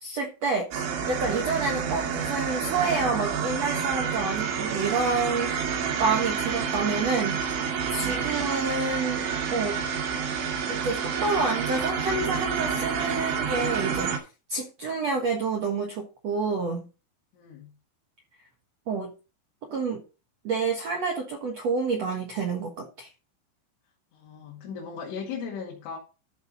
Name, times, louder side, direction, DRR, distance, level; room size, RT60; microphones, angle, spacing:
voice 1, 0.0-7.4 7.9-9.8 10.7-14.2 14.5-16.9 18.9-19.1 19.7-20.0 20.4-23.1, right 4 dB, 70° right, 1.5 m, -28 dB
sound 1, 0.7-14.2, right 6 dB, 85° right, 4.7 m, -29 dB
voice 2, 8.0-8.3 17.3-17.7 24.1-26.0, left 6 dB, 85° left, 4.6 m, -38 dB
13.5 x 6.4 x 4.0 m
omnidirectional pair, 5.4 m